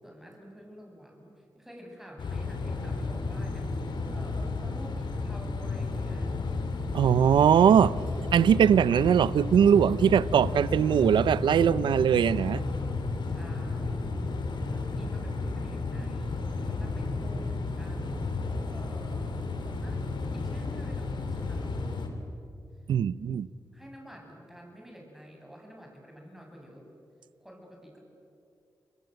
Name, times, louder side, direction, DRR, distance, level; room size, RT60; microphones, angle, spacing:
voice 1, 0.0-6.4 10.8-11.4 13.3-14.1 14.5-16.3 16.6-18.2 18.7-19.3 19.6-20.0 20.3-22.1 23.7-26.9 27.4-28.0, equal, 5° right, 7.8 m, -49 dB
sound 1, 2.2-22.1, left 3 dB, 75° left, 3.0 m, -32 dB
voice 2, 6.9-7.9 8.3-12.6 22.9-23.5, right 8 dB, 90° right, 0.6 m, -21 dB
29.0 x 22.0 x 7.9 m
cardioid pair, 60°, 8 cm